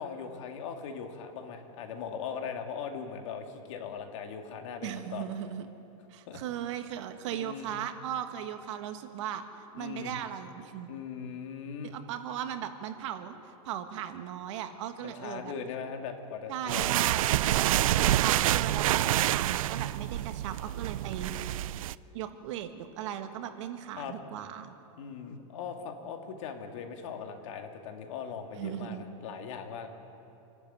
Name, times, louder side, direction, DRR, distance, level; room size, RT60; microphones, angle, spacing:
voice 1, 0.0-5.2 6.3-6.4 7.3-7.7 9.7-10.2 10.9-12.0 15.0-16.9 18.0-18.6 24.0-24.2 25.0-29.9, left 6 dB, 65° left, 4 dB, 2.4 m, -40 dB
voice 2, 4.8-5.7 6.1-9.4 9.7-10.9 11.8-15.5 16.5-17.4 18.0-21.3 22.1-24.7 28.6-29.0, right 10 dB, 60° right, 7 dB, 1.6 m, -37 dB
sound 1, 16.7-21.9, right 14 dB, 90° right, 0.5 m, -27 dB
27.0 x 12.0 x 9.3 m, 2.9 s
supercardioid pair, 160°, 17 cm